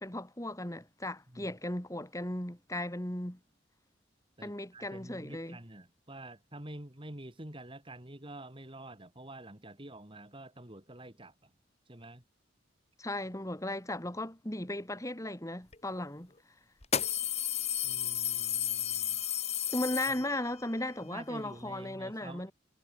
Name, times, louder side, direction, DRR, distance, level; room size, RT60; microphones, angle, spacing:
voice 1, 0.0-3.4 4.4-5.6 13.0-16.3 19.7-22.5, left 1 dB, 15° left, 3.1 m, -36 dB
voice 2, 1.3-1.6 4.4-11.5 11.9-12.2 17.8-19.2 20.1-20.2 21.0-22.5, right 1 dB, 25° right, 3.1 m, -48 dB
sound 1, 15.7-15.8 16.8-20.6, left 10 dB, 35° left, 1.8 m, -33 dB
head